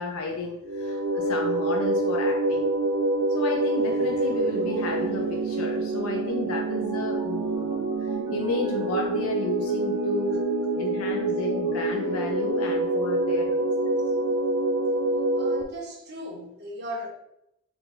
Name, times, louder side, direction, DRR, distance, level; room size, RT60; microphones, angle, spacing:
voice 1, 0.0-2.7 3.3-10.5 10.7-13.9, left 3 dB, 75° left, 1 dB, 0.5 m, -32 dB
sound 1, 0.6-15.6, right 2 dB, 80° right, 0.4 m, -26 dB
Mallet percussion, 5.6-10.5, right 1 dB, 15° right, 0.6 m, -45 dB
voice 2, 15.3-17.1, equal, 45° right, -2 dB, 1.0 m, -37 dB
4.6 x 2.5 x 3.7 m, 0.81 s
head